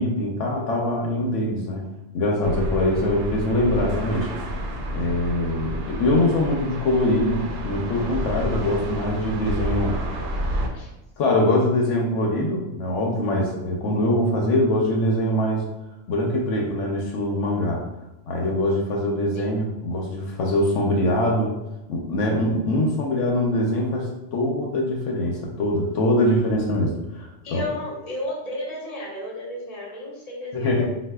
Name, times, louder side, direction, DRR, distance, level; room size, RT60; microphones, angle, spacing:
voice 1, 0.0-1.8 2.1-4.3 4.9-10.0 11.2-15.6 16.1-17.8 18.3-21.5 21.9-27.6 30.5-30.9, left 1 dB, 80° left, 0 dB, 0.9 m, -23 dB
sound 1, 2.4-10.7, equal, 70° right, 0.8 m, -30 dB
voice 2, 27.4-30.9, left 1 dB, 35° left, -4 dB, 0.9 m, -33 dB
4.2 x 2.3 x 2.2 m, 0.99 s
omnidirectional pair, 1.3 m